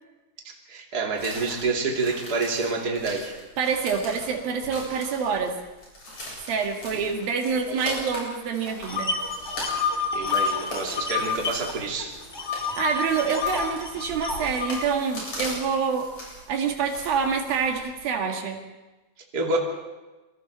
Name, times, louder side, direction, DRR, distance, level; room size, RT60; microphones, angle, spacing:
voice 1, 0.4-3.3 7.0-7.1 7.7-7.9 10.1-12.1 19.3-19.6, right 3 dB, 30° right, 0 dB, 3.0 m, -28 dB
sound 1, 1.2-18.1, left 1 dB, 40° left, 9.1 m, -40 dB
voice 2, 3.6-5.5 6.4-9.1 12.8-16.1 16.5-18.6, right 6 dB, 80° right, 3 dB, 3.8 m, -26 dB
sound 2, 8.9-11.7 12.0-14.7, left 5 dB, 10° left, 2.2 m, -28 dB
27.5 x 23.0 x 4.2 m, 1.1 s
omnidirectional pair, 4.1 m